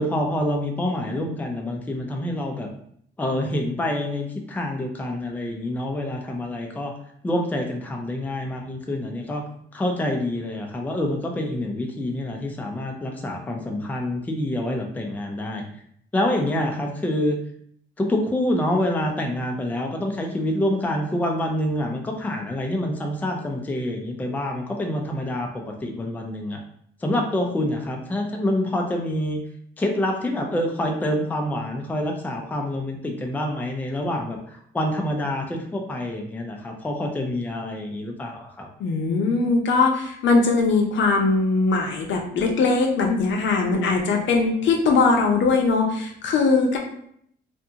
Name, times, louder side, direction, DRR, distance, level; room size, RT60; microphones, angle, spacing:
voice 1, 0.0-2.7 3.2-6.9 7.2-9.4 9.7-15.6 16.1-17.4 18.0-25.5 25.8-26.6 27.0-29.4 29.8-38.7, left 1 dB, 10° left, 2 dB, 0.4 m, -26 dB
voice 2, 38.8-46.8, left 4 dB, 70° left, 1 dB, 0.6 m, -20 dB
2.5 x 2.3 x 2.7 m, 0.67 s
cardioid pair, 90°, 20 cm